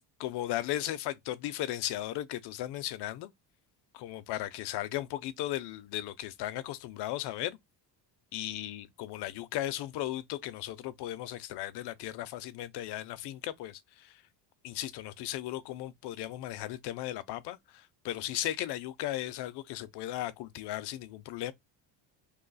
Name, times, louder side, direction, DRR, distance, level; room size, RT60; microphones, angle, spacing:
voice 1, 0.0-3.3 3.9-7.6 8.3-14.2 14.6-21.5, left 14 dB, 65° left, 0.6 m, -36 dB
3.1 x 2.1 x 3.9 m
cardioid pair, 125°, 44 cm